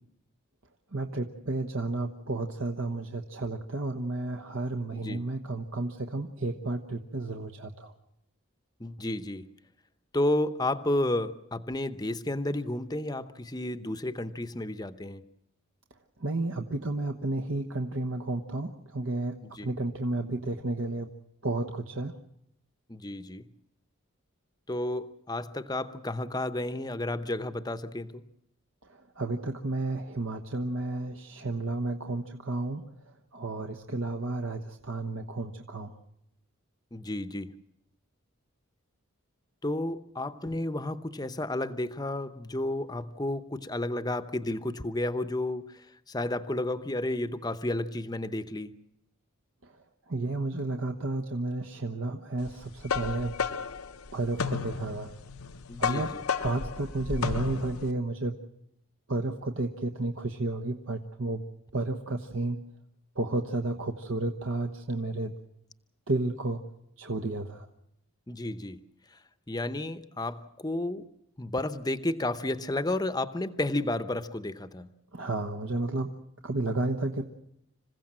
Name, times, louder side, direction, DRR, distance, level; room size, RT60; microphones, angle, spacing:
voice 1, 0.9-7.9 16.2-21.1 21.4-22.2 29.2-32.9 33.3-35.9 50.1-53.4 54.1-55.1 55.8-58.4 59.1-61.4 61.7-62.6 63.2-65.3 66.1-66.6 67.0-67.7 75.1-77.2, right 2 dB, 70° right, 4 dB, 1.2 m, -32 dB
voice 2, 8.8-9.4 10.1-15.2 19.5-19.7 22.9-23.4 24.7-28.2 36.9-37.5 39.6-48.7 55.7-56.2 68.3-68.8 69.5-71.1 71.4-74.9, left 1 dB, 20° left, 11 dB, 0.8 m, -32 dB
sound 1, 52.5-57.9, left 5 dB, 85° left, 0.8 m, -33 dB
27.0 x 16.0 x 7.5 m, 0.80 s
head